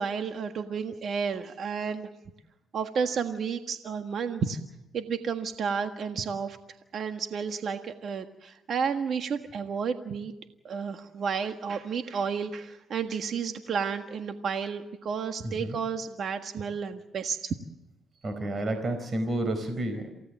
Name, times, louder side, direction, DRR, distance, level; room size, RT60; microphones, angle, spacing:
voice 1, 0.0-2.1 2.7-4.6 4.9-6.6 6.9-10.3 10.6-17.5, right 6 dB, 60° right, 6 dB, 1.6 m, -31 dB
voice 2, 15.4-15.8 18.2-20.1, right 1 dB, 40° right, 8 dB, 4.6 m, -30 dB
28.5 x 17.0 x 7.5 m, 0.93 s
cardioid pair, 90°, 0 cm